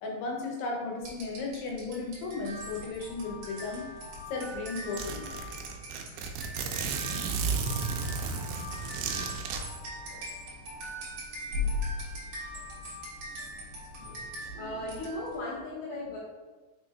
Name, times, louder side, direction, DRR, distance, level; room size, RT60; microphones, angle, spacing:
voice 1, 0.0-3.9 4.3-5.3, left 3 dB, 85° left, -1 dB, 3.2 m, -35 dB
sound 1, 1.0-15.5, left 2 dB, 55° right, 3.0 m, -40 dB
Zipper (clothing), 4.2-4.3 4.5-4.6 5.0-9.6, right 5 dB, 90° right, 2.7 m, -33 dB
voice 2, 14.4-16.2, left 1 dB, 60° left, -9 dB, 2.9 m, -37 dB
6.5 x 6.4 x 2.4 m, 1.2 s
omnidirectional pair, 4.6 m